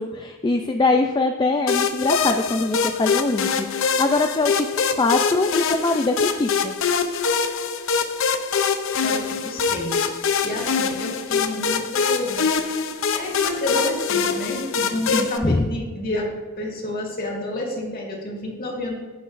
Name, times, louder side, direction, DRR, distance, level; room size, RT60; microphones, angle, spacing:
voice 1, 0.0-4.7 5.0-6.7 14.9-15.7, left 3 dB, 20° left, 4 dB, 0.3 m, -22 dB
sound 1, 1.7-15.4, left 5 dB, 65° left, 0.6 m, -24 dB
voice 2, 9.0-12.4 12.7-12.8 13.1-16.3 16.6-18.9, left 1 dB, 45° left, -2 dB, 2.0 m, -30 dB
17.0 x 5.8 x 2.5 m, 1.3 s
head